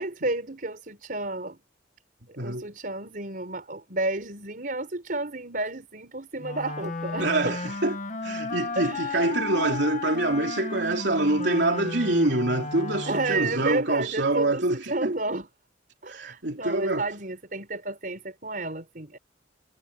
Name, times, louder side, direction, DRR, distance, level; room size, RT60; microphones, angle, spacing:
voice 1, 0.0-1.6 2.3-7.6 8.8-9.2 13.0-15.5 16.0-19.2, right 2 dB, 50° right, 4.9 m, -31 dB
voice 2, 2.4-2.7 7.2-7.9 8.2-15.1 16.1-17.0, right 2 dB, 75° right, 3.2 m, -25 dB
Wind instrument woodwind instrument, 6.4-13.8, left 3 dB, 45° left, 1.7 m, -34 dB
head